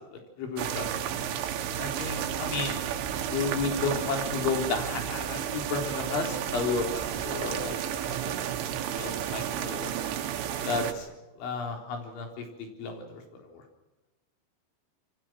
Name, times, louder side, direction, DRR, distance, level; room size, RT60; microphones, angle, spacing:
voice 1, 0.4-0.9 1.8-2.8 3.3-7.8 8.1-8.3 8.9-9.9 10.7-11.1 11.4-12.5 12.8-13.6, left 4 dB, 75° left, 3 dB, 6.3 m, -32 dB
sound 1, 0.6-10.9, right 9 dB, 80° right, 4.2 m, -32 dB
28.0 x 24.0 x 6.4 m, 1.0 s
omnidirectional pair, 5.5 m